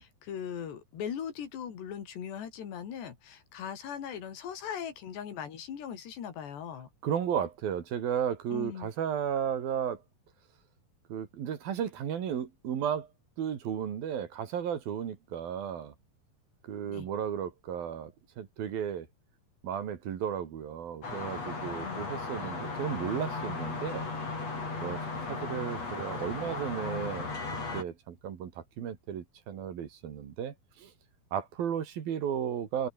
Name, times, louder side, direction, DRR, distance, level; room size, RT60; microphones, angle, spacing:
voice 1, 0.0-6.9 8.5-8.9 16.9-17.1 21.7-22.2, left 8 dB, 85° left, 5.4 m, -39 dB
voice 2, 7.0-10.0 11.1-13.1 13.4-15.9 16.7-19.1 19.6-24.1 24.8-25.0 25.3-27.3 27.7-30.9 31.3-32.9, right 8 dB, 65° right, 4.0 m, -34 dB
sound 1, 21.0-27.8, left 3 dB, 40° left, 7.4 m, -36 dB
omnidirectional pair, 4.8 m